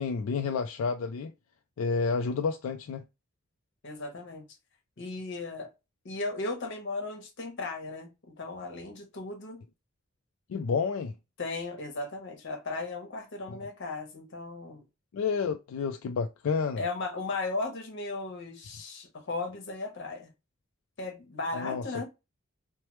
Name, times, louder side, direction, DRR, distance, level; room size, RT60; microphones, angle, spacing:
voice 1, 0.0-1.3 1.8-3.0 10.5-11.1 13.5-13.6 15.1-16.8 21.5-21.8, left 5 dB, 85° left, 0.3 m, -30 dB
voice 2, 3.8-4.4 5.0-5.7 6.0-9.6 11.4-14.8 16.8-20.3 21.0-22.1, left 3 dB, 60° left, 0.9 m, -36 dB
3.1 x 2.1 x 2.9 m
head